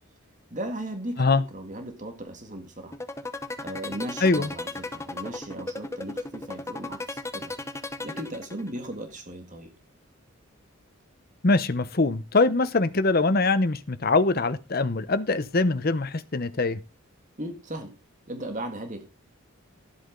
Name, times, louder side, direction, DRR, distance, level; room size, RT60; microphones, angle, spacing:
voice 1, 0.5-2.9 3.6-7.5 8.0-9.7 17.4-17.9 18.3-19.0, right 1 dB, 35° right, 1.8 m, -37 dB
sound 1, 2.9-8.9, left 2 dB, 15° left, 0.9 m, -35 dB
voice 2, 11.4-16.8, left 3 dB, 45° left, 0.8 m, -23 dB
13.0 x 8.6 x 3.9 m
head